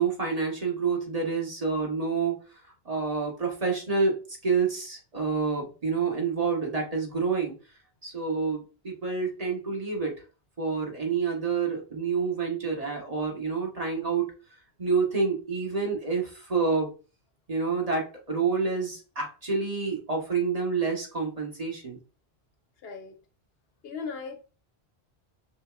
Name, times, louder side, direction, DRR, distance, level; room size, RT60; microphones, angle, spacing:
voice 1, 0.0-2.4 2.8-4.2 4.4-7.5 8.0-10.2 10.6-14.3 14.8-16.9 17.5-22.0, right 5 dB, 35° right, 1.3 m, -28 dB
voice 2, 22.8-23.2 23.8-24.4, left 5 dB, 75° left, 0.9 m, -37 dB
6.2 x 2.7 x 2.4 m
omnidirectional pair, 1.1 m